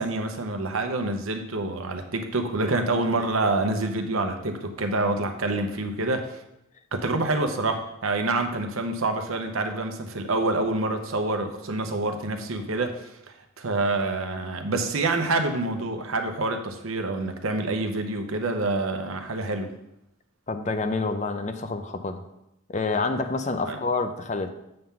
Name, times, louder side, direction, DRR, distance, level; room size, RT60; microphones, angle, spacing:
voice 1, 0.0-6.4 6.9-13.1 13.6-19.7 23.7-23.8, right 2 dB, 80° right, 5 dB, 0.8 m, -27 dB
voice 2, 20.5-22.2 22.7-24.5, left 3 dB, 35° left, 8 dB, 0.5 m, -28 dB
7.7 x 3.7 x 5.7 m, 0.86 s
head